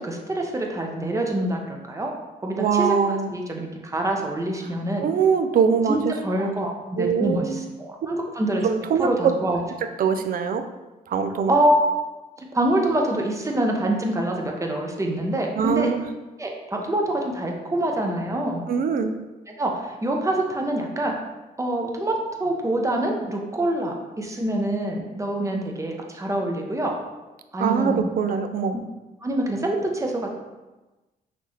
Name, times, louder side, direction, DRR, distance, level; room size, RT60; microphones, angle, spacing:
voice 1, 0.0-2.1 2.4-5.1 5.9-8.7 9.0-9.6 11.5-11.8 12.4-15.9 16.4-18.6 19.6-21.1 21.6-26.9 27.5-28.0 29.2-30.4, right 1 dB, 20° right, 1 dB, 0.7 m, -25 dB
voice 2, 2.6-3.3 5.0-6.5 7.0-7.6 8.6-9.3 9.8-10.6 11.1-11.5 15.6-16.0 18.7-19.1 27.6-28.8, right 6 dB, 65° right, 8 dB, 0.4 m, -23 dB
5.9 x 2.8 x 3.1 m, 1.1 s
cardioid pair, 100°, 16 cm